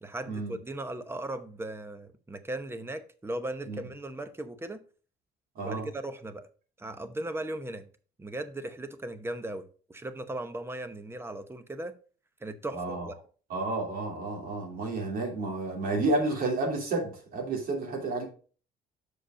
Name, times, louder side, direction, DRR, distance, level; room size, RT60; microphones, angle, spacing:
voice 1, 0.0-4.8 5.6-6.5 6.8-7.9 8.2-12.0 12.4-13.2, right 1 dB, 15° right, 0.9 m, -37 dB
voice 2, 12.7-13.1 13.5-18.2, right 2 dB, 60° right, 3.0 m, -31 dB
6.5 x 5.1 x 5.1 m
cardioid pair, 110°, 17 cm